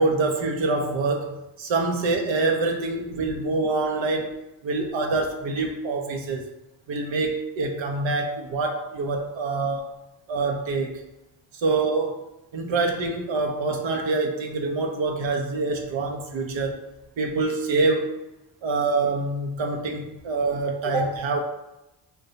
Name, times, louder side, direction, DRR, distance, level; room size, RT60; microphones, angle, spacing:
voice 1, 0.0-6.5 6.9-9.9 10.3-11.0 11.5-12.3 12.5-16.8 17.2-18.1 18.6-21.4, right 3 dB, 65° right, 2 dB, 0.7 m, -25 dB
2.6 x 2.2 x 3.8 m, 0.94 s
cardioid pair, 65°, 50 cm